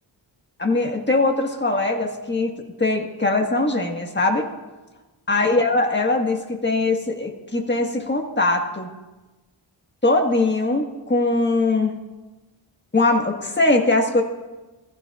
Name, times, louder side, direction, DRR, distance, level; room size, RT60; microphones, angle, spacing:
voice 1, 0.6-2.5 2.8-4.5 5.3-8.9 10.0-12.0 12.9-14.2, left 2 dB, 20° left, 2 dB, 1.6 m, -21 dB
24.0 x 15.0 x 2.4 m, 1.1 s
wide cardioid pair, 60°, 49 cm